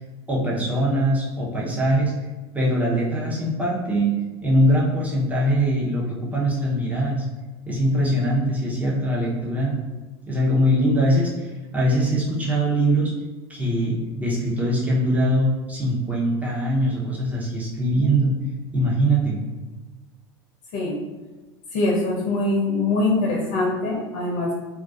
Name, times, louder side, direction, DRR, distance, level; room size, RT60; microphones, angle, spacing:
voice 1, 0.3-2.1 2.5-4.1 4.4-7.2 7.7-9.8 10.3-13.1 13.5-18.3 18.7-19.5, right 1 dB, 10° right, -5 dB, 0.7 m, -22 dB
voice 2, 21.7-24.5, left 2 dB, 60° left, -3 dB, 0.5 m, -23 dB
2.3 x 2.3 x 2.4 m, 1.2 s
hypercardioid pair, 90°, 14 cm